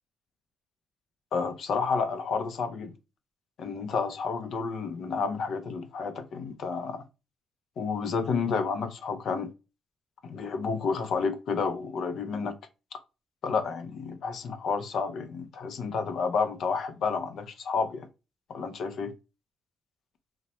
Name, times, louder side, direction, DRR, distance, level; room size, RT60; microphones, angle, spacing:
voice 1, 1.3-2.9 3.6-7.0 7.8-9.5 10.2-12.6 13.4-18.1 18.5-19.1, left 5 dB, 65° left, 0.5 m, -30 dB
2.8 x 2.1 x 2.9 m
cardioid pair, 90°, 0 cm